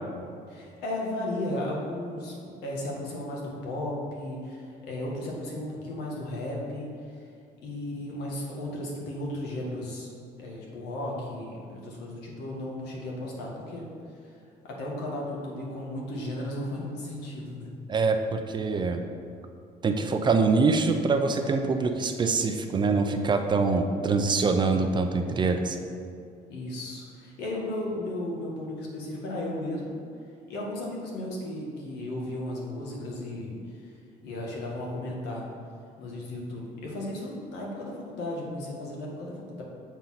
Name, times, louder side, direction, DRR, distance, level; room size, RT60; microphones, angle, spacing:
voice 1, 0.5-6.9 7.6-10.1 10.4-13.9 14.2-14.3 14.7-17.7 26.5-30.0 30.5-33.5 33.8-33.9 34.2-35.5 36.0-39.6, left 1 dB, 85° left, -2 dB, 1.7 m, -35 dB
voice 2, 17.9-19.0 19.8-25.8, right 4 dB, 30° right, 6 dB, 0.5 m, -24 dB
7.1 x 3.9 x 5.7 m, 2.4 s
cardioid pair, 130°, 17 cm